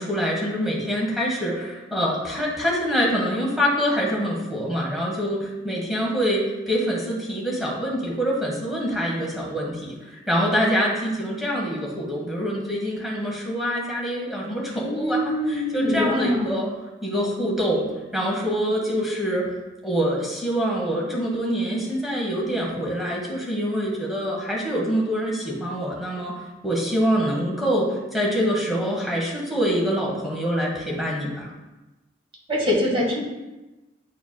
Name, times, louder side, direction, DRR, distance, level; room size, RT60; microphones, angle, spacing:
voice 1, 0.0-16.7 17.0-17.8 18.1-19.5 19.8-26.3 26.6-31.5, equal, ahead, -4 dB, 1.5 m, -25 dB
voice 2, 14.8-16.5 32.5-33.2, left 1 dB, 30° right, -3 dB, 1.6 m, -23 dB
9.0 x 4.6 x 2.3 m, 1.1 s
head